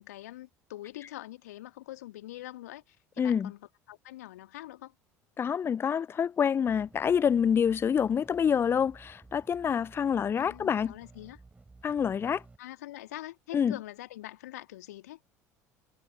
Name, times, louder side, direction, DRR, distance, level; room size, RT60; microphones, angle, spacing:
voice 1, 0.0-3.6 3.9-4.9 10.4-11.4 12.6-15.2, left 15 dB, 70° left, 2.0 m, -44 dB
voice 2, 3.2-3.5 5.4-11.0 11.8-12.4 13.5-13.8, left 7 dB, 25° left, 0.4 m, -27 dB
sound 1, 6.7-12.6, right 3 dB, 15° right, 5.2 m, -55 dB
figure-of-eight pair, 65°, 9 cm